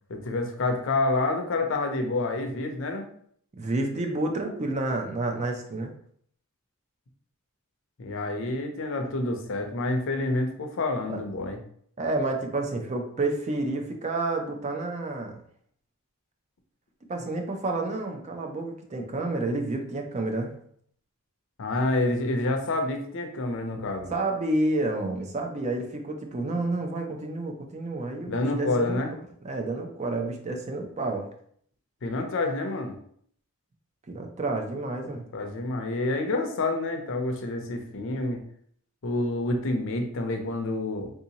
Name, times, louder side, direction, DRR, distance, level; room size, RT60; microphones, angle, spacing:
voice 1, 0.1-3.1 8.0-11.6 21.6-24.1 28.3-29.1 32.0-33.0 35.0-38.4 39.0-41.1, left 2 dB, 65° left, 5 dB, 0.6 m, -28 dB
voice 2, 3.5-5.9 11.1-11.2 12.0-15.4 17.1-20.5 24.1-29.0 29.4-31.3 34.1-35.3, right 2 dB, 30° right, 3 dB, 0.5 m, -29 dB
3.5 x 2.7 x 2.8 m, 0.62 s
head